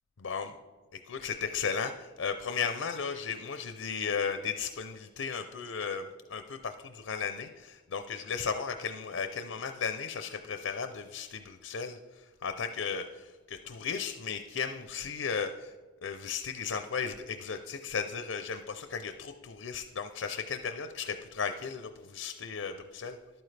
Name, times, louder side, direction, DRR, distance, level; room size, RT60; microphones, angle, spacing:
voice 1, 1.1-15.7 16.0-23.2, left 6 dB, 90° left, 8 dB, 0.6 m, -35 dB
11.5 x 8.9 x 3.3 m, 1.3 s
head